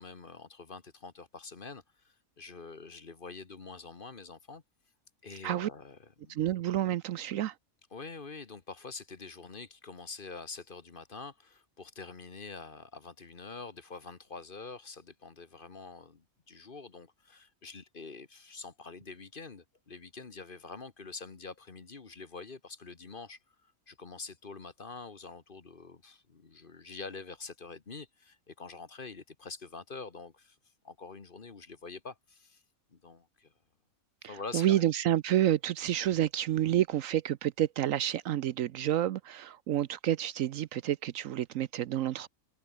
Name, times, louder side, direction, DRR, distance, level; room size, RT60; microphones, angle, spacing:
voice 1, 0.0-4.6 5.2-6.4 7.9-30.6 30.8-32.6 32.9-33.5 34.2-34.8, left 4 dB, 40° left, 1.4 m, -46 dB
voice 2, 6.3-7.5 34.2-42.3, right 12 dB, 70° right, 1.0 m, -29 dB
omnidirectional pair, 1.5 m